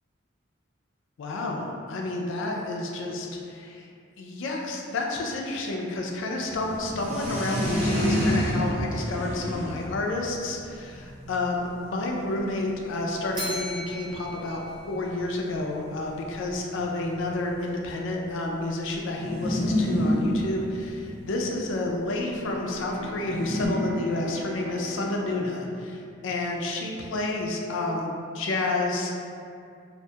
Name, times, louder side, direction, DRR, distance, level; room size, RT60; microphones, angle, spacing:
voice 1, 1.2-3.9 4.2-29.2, left 2 dB, 70° left, 0 dB, 0.4 m, -30 dB
sound 1, 6.5-12.6 13.3-13.4 13.5-13.6 13.8-14.0 14.9-15.0 15.3-15.4 16.1-17.7 19.1-21.8 23.2-23.7, equal, 60° right, 1.1 m, -28 dB
Bell, 13.3-15.6, equal, 25° right, 0.4 m, -38 dB
Bowed string instrument, 22.4-26.7, left 2 dB, 30° left, 0.6 m, -40 dB
2.4 x 2.2 x 2.8 m, 2.4 s
head